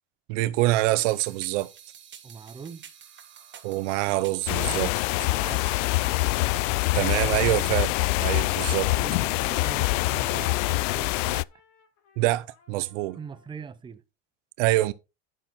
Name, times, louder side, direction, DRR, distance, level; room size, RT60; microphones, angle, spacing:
voice 1, 0.3-1.7 3.6-4.9 6.9-7.9 8.2-8.9 12.2-13.2 14.6-14.9, right 17 dB, 75° right, 0.8 m, -25 dB
sound 1, 1.1-6.7, right 9 dB, 30° right, 1.7 m, -48 dB
voice 2, 2.2-2.9 5.3-5.7 7.0-7.3 8.9-11.5 12.8-14.0, right 6 dB, 15° right, 0.7 m, -42 dB
sound 2, 4.5-11.4, left 21 dB, 80° left, 0.5 m, -25 dB
Trumpet, 11.1-13.5, left 5 dB, 55° left, 4.6 m, -56 dB
11.0 x 5.8 x 4.1 m
supercardioid pair, 130°, 37 cm